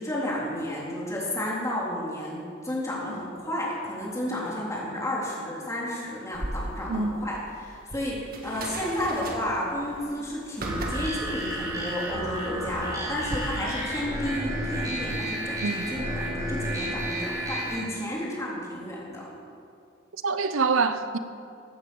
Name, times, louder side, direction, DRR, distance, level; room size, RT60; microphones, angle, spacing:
voice 1, 0.0-19.3, left 1 dB, 15° left, 3.4 m, -32 dB
sound 1, 6.3-13.4, right 1 dB, 45° right, 1.7 m, -38 dB
sound 2, 10.6-17.8, right 1 dB, 15° right, 3.9 m, -32 dB
voice 2, 20.2-21.2, right 4 dB, 85° right, 0.7 m, -25 dB
15.0 x 9.2 x 7.0 m
head